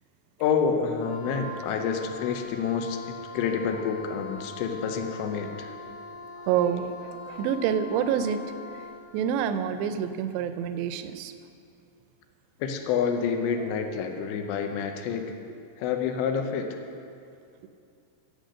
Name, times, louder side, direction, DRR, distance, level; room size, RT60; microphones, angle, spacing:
voice 1, 0.4-5.7 12.6-15.3 15.8-16.7, left 6 dB, 90° left, 5 dB, 3.1 m, -28 dB
Wind instrument woodwind instrument, 0.9-9.1, left 3 dB, 50° left, 3.0 m, -42 dB
voice 2, 6.5-8.4 9.1-11.3 13.6-13.7, right 8 dB, 85° right, 10 dB, 2.8 m, -27 dB
10.5 x 7.7 x 6.4 m, 2.5 s
omnidirectional pair, 5.0 m